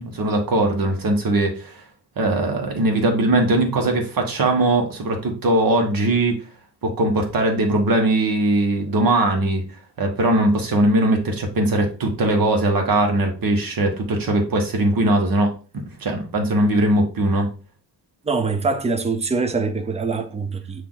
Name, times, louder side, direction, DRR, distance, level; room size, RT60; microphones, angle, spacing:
voice 1, 0.0-1.8 2.2-6.4 6.8-9.6 10.0-15.5 16.0-17.5, right 1 dB, 55° right, 1.6 m, -20 dB
voice 2, 18.2-20.9, right 4 dB, 15° right, 0.5 m, -24 dB
8.4 x 2.9 x 3.9 m
wide cardioid pair, 175°, 41 cm